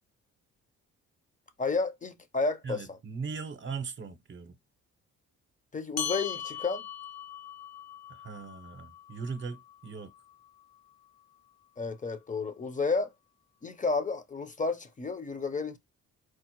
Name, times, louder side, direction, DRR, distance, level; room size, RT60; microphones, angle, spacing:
voice 1, 1.6-3.0 5.7-6.8 11.8-13.1 13.6-15.8, left 4 dB, 25° left, 0.7 m, -31 dB
voice 2, 2.6-4.5 8.2-10.1, right 5 dB, 40° right, 0.8 m, -39 dB
sound 1, 6.0-10.8, left 8 dB, 60° left, 0.9 m, -40 dB
4.7 x 2.0 x 2.9 m
cardioid pair, 80°, 29 cm